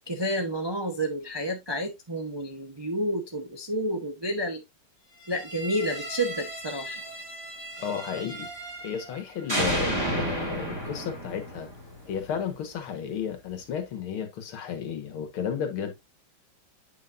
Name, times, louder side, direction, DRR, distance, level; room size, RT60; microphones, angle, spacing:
voice 1, 0.1-4.6 5.3-7.0, equal, 35° right, 0.4 m, -30 dB
sound 1, 5.3-9.2 9.5-12.5, right 1 dB, 10° right, 2.6 m, -33 dB
voice 2, 7.8-8.5 8.8-11.7 12.0-15.9, left 8 dB, 85° left, 2.3 m, -33 dB
8.7 x 5.8 x 2.5 m
omnidirectional pair, 2.3 m